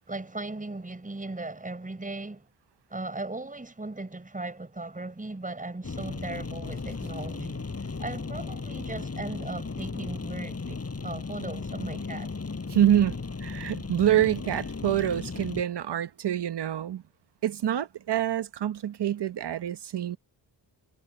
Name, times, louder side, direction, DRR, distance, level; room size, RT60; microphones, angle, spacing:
voice 1, 0.0-2.5 2.9-12.3, right 2 dB, 15° right, 6.4 m, -38 dB
sound 1, 5.8-15.6, left 4 dB, 30° left, 6.3 m, -36 dB
voice 2, 12.7-17.0 17.4-20.2, right 11 dB, 60° right, 0.9 m, -26 dB
wide cardioid pair, 160°, 47 cm